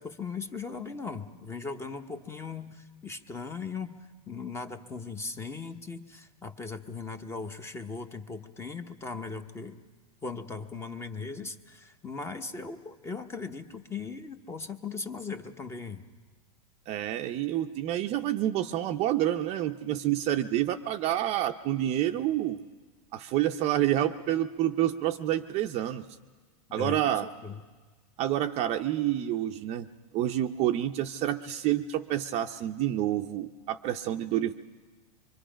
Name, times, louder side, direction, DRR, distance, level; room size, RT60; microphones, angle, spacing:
voice 1, 0.0-3.9 4.3-9.8 10.2-16.0 26.7-27.6, left 4 dB, 10° left, 8 dB, 0.8 m, -38 dB
voice 2, 16.9-22.6 23.1-26.0 26.7-27.3 28.2-29.9 30.1-34.5, right 12 dB, 30° right, 7 dB, 0.5 m, -28 dB
24.5 x 24.0 x 5.1 m, 1.4 s
supercardioid pair, 145°, 21 cm